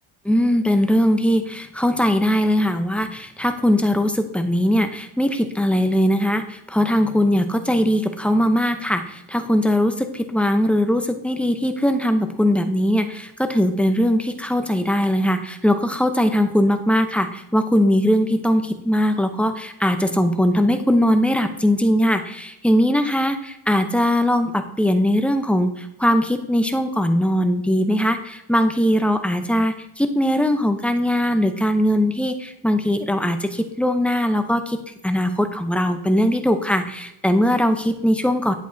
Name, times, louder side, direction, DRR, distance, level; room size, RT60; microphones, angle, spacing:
voice 1, 0.3-34.8 35.0-38.5, equal, 5° left, 7 dB, 0.6 m, -20 dB
10.5 x 8.1 x 2.7 m, 0.87 s
cardioid pair, 105°, 44 cm